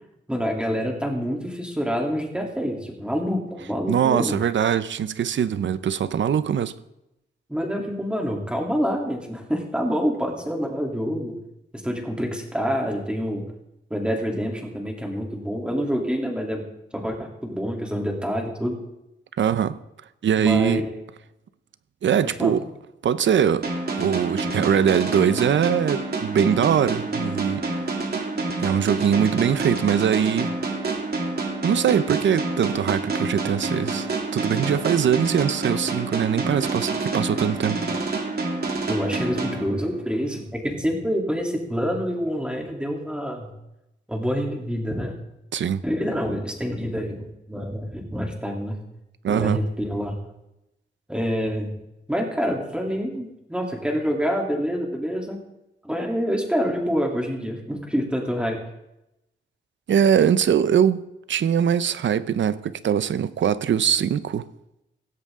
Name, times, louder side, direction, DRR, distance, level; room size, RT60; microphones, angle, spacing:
voice 1, 0.3-4.4 7.5-11.3 11.7-13.4 13.9-16.6 16.9-18.8 20.4-20.9 22.2-22.5 38.9-43.5 44.1-45.2 45.8-48.8 49.3-50.2 51.1-51.8 52.1-55.4 55.8-58.6, equal, 5° right, 3.1 m, -27 dB
voice 2, 3.9-6.7 19.4-19.8 20.2-20.8 22.0-22.6 23.0-23.7 24.0-27.6 28.6-30.5 31.6-37.8 45.5-45.8 49.2-49.6 59.9-61.0 61.3-64.5, right 8 dB, 80° right, 0.7 m, -22 dB
sound 1, 23.6-40.2, right 3 dB, 55° right, 3.1 m, -28 dB
16.5 x 16.0 x 3.7 m
wide cardioid pair, 115°, 19 cm